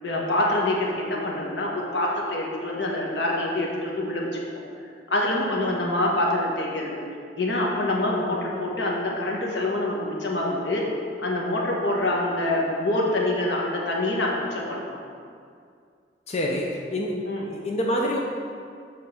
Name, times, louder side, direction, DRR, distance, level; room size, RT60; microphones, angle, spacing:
voice 1, 0.0-4.3 5.1-7.0 7.4-10.8 11.2-15.0 17.3-17.4, left 1 dB, 85° left, -2 dB, 1.2 m, -25 dB
voice 2, 16.3-17.1 17.5-18.2, equal, 40° left, -1 dB, 0.6 m, -26 dB
6.9 x 3.7 x 5.7 m, 2.3 s
head